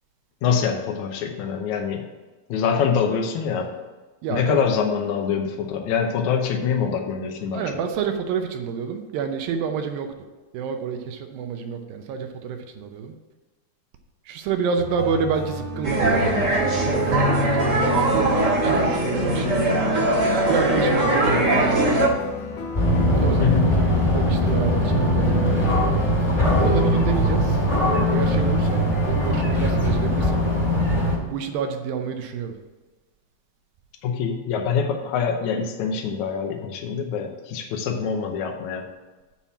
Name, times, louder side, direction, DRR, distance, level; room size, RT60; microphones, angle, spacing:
voice 1, 0.4-2.1 2.5-3.7 4.3-7.6 23.4-23.7 34.0-38.9, left 6 dB, 90° left, 3 dB, 1.6 m, -24 dB
voice 2, 4.2-4.6 7.5-10.1 10.5-13.2 14.3-18.2 18.6-19.6 20.5-21.8 23.1-23.7 24.1-25.7 26.6-27.6 28.1-30.5 31.3-32.5, right 6 dB, 75° right, 5 dB, 2.3 m, -29 dB
sound 1, 14.8-29.4, left 3 dB, 70° left, 3.3 m, -34 dB
sound 2, 15.8-22.1, right 1 dB, 45° right, 1.3 m, -20 dB
sound 3, 22.7-31.2, equal, 20° left, 1.1 m, -20 dB
9.2 x 4.3 x 7.1 m, 1.3 s
omnidirectional pair, 4.5 m